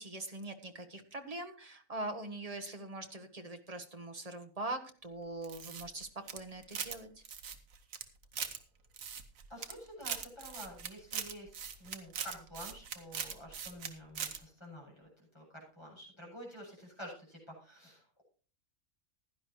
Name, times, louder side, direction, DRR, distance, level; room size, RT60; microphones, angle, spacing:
voice 1, 0.0-7.1, right 2 dB, 25° right, 7 dB, 1.2 m, -42 dB
sound 1, 5.4-7.0 7.2-8.6 8.9-9.7 10.0-13.9 14.1-14.4, right 7 dB, 65° right, 1.4 m, -40 dB
voice 2, 9.5-18.2, equal, 20° left, -3 dB, 7.8 m, -49 dB
16.0 x 11.0 x 3.1 m, 0.39 s
omnidirectional pair, 1.5 m